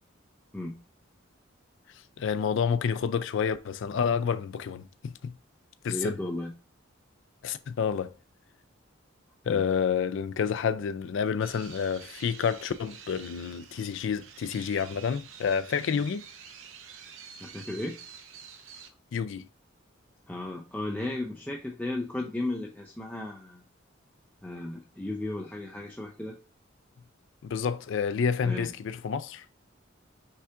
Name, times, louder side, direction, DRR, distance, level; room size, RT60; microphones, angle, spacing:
voice 1, 2.2-5.3 5.8-6.2 7.4-8.1 9.5-16.2 19.1-19.5 27.4-29.5, left 6 dB, 65° left, 0.4 m, -29 dB
voice 2, 5.9-6.5 9.5-9.6 17.4-18.0 20.3-23.6 24.4-26.4 28.4-28.7, left 2 dB, 10° left, 0.5 m, -35 dB
sound 1, 11.4-18.9, right 7 dB, 75° right, 0.6 m, -48 dB
5.5 x 2.5 x 3.4 m
head